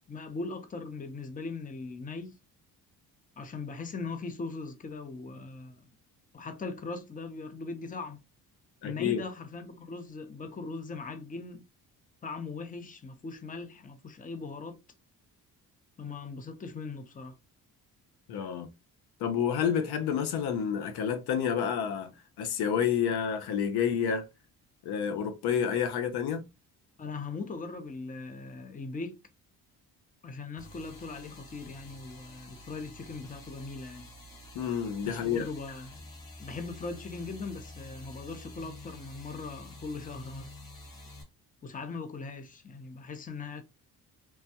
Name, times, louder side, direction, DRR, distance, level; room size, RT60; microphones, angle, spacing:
voice 1, 0.1-2.4 3.4-5.9 6.3-8.2 8.8-11.7 12.2-14.8 16.0-17.4 27.0-29.2 30.2-34.1 35.0-36.0 36.4-40.5 41.6-43.6, left 4 dB, 20° left, 0.6 m, -40 dB
voice 2, 8.8-9.2 18.3-18.7 19.2-22.1 22.4-24.2 24.8-26.4 34.5-35.5, left 8 dB, 80° left, 0.7 m, -29 dB
sound 1, 30.6-41.2, left 1 dB, 55° left, 2.0 m, -49 dB
3.3 x 2.2 x 2.8 m
cardioid pair, 75°, 38 cm